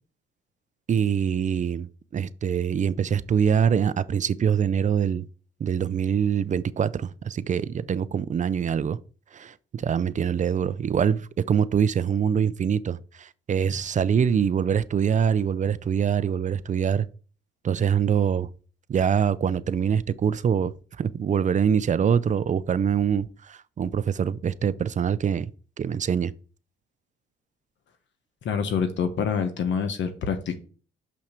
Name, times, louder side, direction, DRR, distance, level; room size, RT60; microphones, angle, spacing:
voice 1, 0.9-5.3 5.6-9.0 9.3-17.1 17.6-18.5 18.9-25.5 25.8-26.3, right 7 dB, 40° right, 0.5 m, -24 dB
voice 2, 28.4-30.6, left 6 dB, 70° left, 1.3 m, -26 dB
6.3 x 5.8 x 4.4 m
cardioid pair, 90°, 20 cm